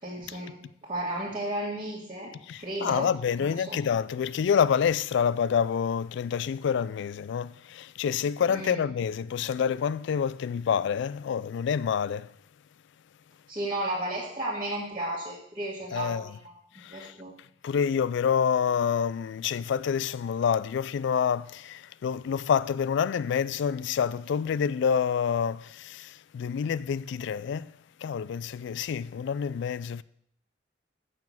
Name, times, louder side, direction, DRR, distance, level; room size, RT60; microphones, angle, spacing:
voice 1, 0.0-2.3 2.6-3.1 3.4-3.8 8.5-8.8 13.5-17.3, right 1 dB, 30° right, 2.0 m, -34 dB
voice 2, 2.5-12.3 15.9-16.2 16.8-17.1 17.6-27.7 28.0-30.0, left 7 dB, 70° left, 0.3 m, -27 dB
6.9 x 6.0 x 7.2 m
head